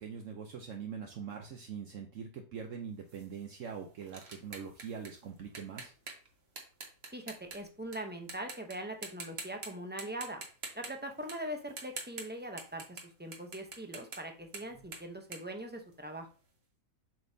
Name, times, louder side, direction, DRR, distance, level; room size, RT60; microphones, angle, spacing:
voice 1, 0.0-5.9, right 6 dB, 65° right, 3 dB, 1.1 m, -43 dB
sound 1, 3.1-8.0 8.3-8.7 9.0-9.7 10.0-16.3, right 3 dB, 50° right, 1.4 m, -46 dB
voice 2, 7.1-10.4 10.7-16.3, right 1 dB, 10° right, 4 dB, 0.5 m, -42 dB
7.6 x 5.4 x 2.7 m, 0.36 s
omnidirectional pair, 1.5 m